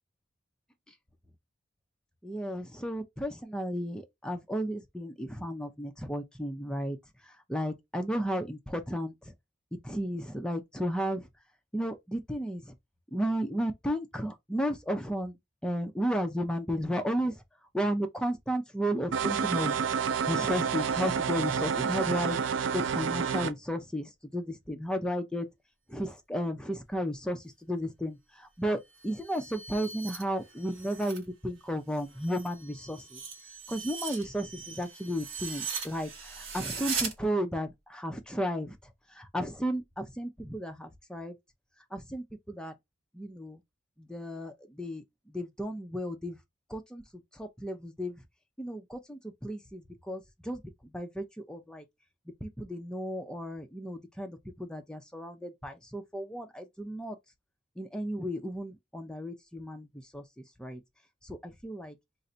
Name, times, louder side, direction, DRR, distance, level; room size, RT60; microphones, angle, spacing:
voice 1, 2.2-9.3 9.8-11.3 11.7-12.8 13.1-17.4 17.7-19.8 20.3-22.4 22.7-25.5 25.9-41.4 41.9-42.7 43.1-43.6 44.0-46.4 46.7-48.3 48.6-51.8 52.4-57.2 57.8-60.8 61.2-62.0, equal, 5° left, 0.5 m, -34 dB
sound 1, 19.1-23.5, right 6 dB, 65° right, 0.4 m, -29 dB
sound 2, 28.8-31.3 31.6-37.1, right 5 dB, 85° right, 1.2 m, -39 dB
2.6 x 2.5 x 4.2 m
head